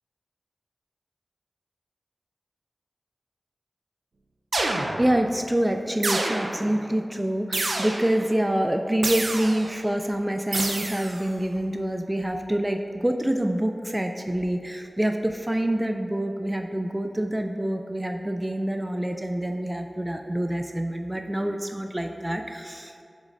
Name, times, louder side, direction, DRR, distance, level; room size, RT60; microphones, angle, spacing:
sound 1, 4.5-5.2 6.0-6.7 7.5-8.2 9.0-9.7 10.5-11.2, right 2 dB, 80° right, 0.6 m, -28 dB
voice 1, 5.0-23.0, right 1 dB, 15° right, 5 dB, 0.3 m, -26 dB
7.2 x 6.4 x 2.6 m, 2.4 s
wide cardioid pair, 55°, 0 cm